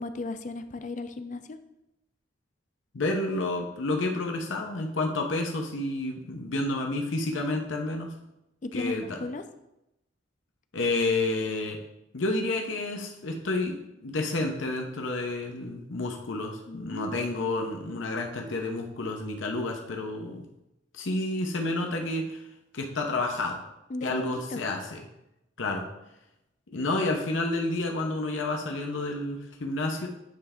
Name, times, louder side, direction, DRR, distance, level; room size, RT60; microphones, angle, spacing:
voice 1, 0.0-1.6 8.6-9.4 16.7-17.2 23.9-24.6, left 2 dB, 40° left, 9 dB, 0.4 m, -35 dB
voice 2, 2.9-8.1 8.7-9.2 10.7-11.8 12.1-20.4 20.9-22.4 22.7-23.6 24.0-25.0 25.6-25.9 26.7-30.1, left 2 dB, 85° left, 1 dB, 0.8 m, -30 dB
9.4 x 3.3 x 3.6 m, 0.89 s
head